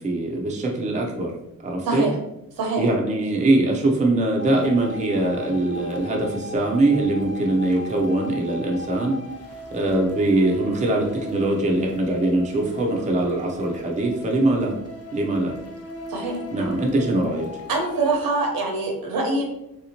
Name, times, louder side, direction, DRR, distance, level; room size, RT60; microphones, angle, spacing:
voice 1, 0.0-1.3 1.6-2.1 2.8-9.2 9.7-14.8 15.1-15.6 16.5-17.5, right 2 dB, 20° right, 0 dB, 0.5 m, -22 dB
voice 2, 1.8-2.1 2.6-2.8 16.1-16.4 17.7-19.4, right 3 dB, 85° right, 0 dB, 1.0 m, -24 dB
sound 1, 4.4-18.2, left 1 dB, 45° left, 0.6 m, -38 dB
3.3 x 2.9 x 2.8 m, 0.85 s
wide cardioid pair, 125°, 35 cm